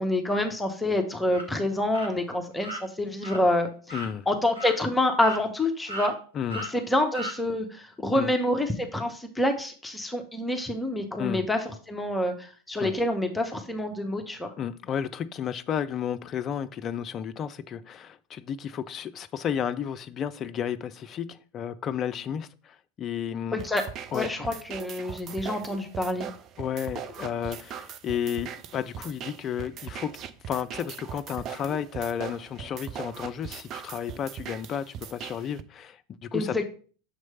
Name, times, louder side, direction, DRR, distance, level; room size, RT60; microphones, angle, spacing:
voice 1, 0.0-3.7 4.3-6.1 6.5-14.5 23.5-23.8 24.1-26.3 36.3-36.6, left 1 dB, 10° left, 0.8 m, -27 dB
sound 1, 1.3-1.5 1.9-2.1 2.6-2.8 3.2-3.4 3.9-4.1 4.6-4.8 5.2-5.6 5.9-6.1 6.5-6.7 7.1-7.4, equal, 75° right, 1.2 m, -36 dB
voice 2, 3.9-4.3 6.3-6.7 8.1-8.3 11.2-11.5 12.8-12.9 14.6-23.6 24.1-24.6 26.6-30.1 30.5-36.6, left 8 dB, 30° left, 0.4 m, -32 dB
sound 2, 23.6-35.6, right 9 dB, 35° right, 0.5 m, -40 dB
6.5 x 3.1 x 5.4 m
figure-of-eight pair, 85°, 0 cm